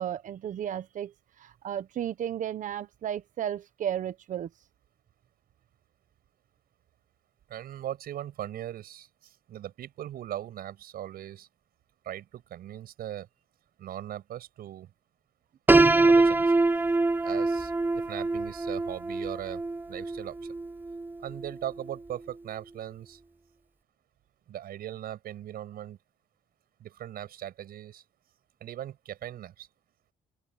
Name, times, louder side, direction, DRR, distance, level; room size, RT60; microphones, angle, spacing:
voice 1, 0.0-4.5, right 10 dB, 55° right, 1.1 m, -34 dB
voice 2, 7.5-11.5 12.0-13.3 13.8-14.9 15.7-16.5 17.2-19.6 19.9-20.5 21.2-23.2 24.5-26.0 26.8-28.0 28.6-29.7, right 11 dB, 70° right, 7.2 m, -39 dB
Piano, 15.7-21.5, right 2 dB, 10° right, 0.8 m, -24 dB
open air
cardioid pair, 140°, 16 cm